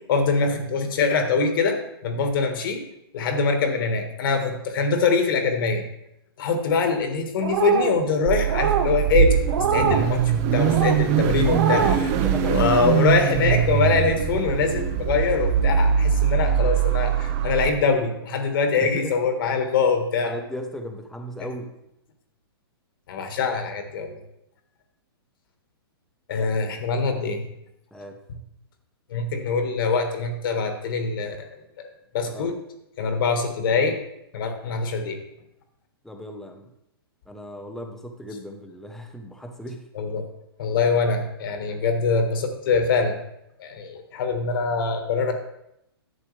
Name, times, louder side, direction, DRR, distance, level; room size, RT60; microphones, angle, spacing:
voice 1, 0.1-2.8 3.1-5.8 6.4-12.1 12.4-20.4 23.1-24.1 26.3-27.4 29.1-31.5 31.8-31.9 32.1-32.5 33.0-34.0 34.3-35.2 39.9-40.2 40.6-43.1 43.6-45.3, left 4 dB, 60° left, 6 dB, 1.6 m, -23 dB
sound 1, 7.4-8.0 8.5-8.9 9.5-10.0 10.6-11.0 11.4-12.0, right 6 dB, 70° right, 1.0 m, -24 dB
Car / Idling / Accelerating revving vroom, 8.3-17.7, right 8 dB, 40° right, 0.7 m, -22 dB
voice 2, 11.8-12.6 18.8-19.2 20.2-21.7 26.4-26.5 27.9-28.2 32.3-32.5 36.0-36.6 37.3-39.9, equal, 5° left, 4 dB, 0.9 m, -36 dB
11.0 x 7.6 x 3.3 m, 0.82 s
hypercardioid pair, 130°, 13 cm